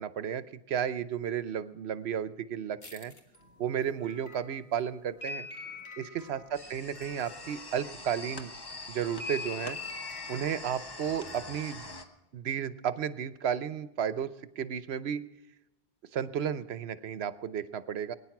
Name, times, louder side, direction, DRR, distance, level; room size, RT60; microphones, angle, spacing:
voice 1, 0.0-3.1 3.6-5.5 6.0-8.5 8.9-9.8 10.3-11.9 12.3-15.2 16.1-18.1, right 8 dB, 80° right, 14 dB, 1.0 m, -33 dB
sound 1, 2.8-8.3 8.7-12.0, left 4 dB, 70° left, 2.2 m, -44 dB
sound 2, 6.5-12.1, left 2 dB, 25° left, 1.2 m, -44 dB
21.5 x 10.0 x 5.9 m, 1.0 s
omnidirectional pair, 1.1 m